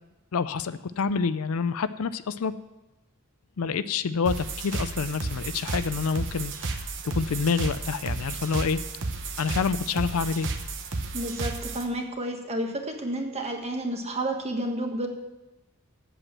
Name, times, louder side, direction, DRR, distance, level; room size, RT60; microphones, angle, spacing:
voice 1, 0.3-2.5 3.6-8.8 9.4-10.5, left 5 dB, 70° left, 14 dB, 0.5 m, -27 dB
sound 1, 4.3-11.8, right 3 dB, 55° right, 0.9 m, -33 dB
voice 2, 11.1-15.1, right 1 dB, 30° right, 3 dB, 1.4 m, -30 dB
8.0 x 7.7 x 7.3 m, 1.0 s
head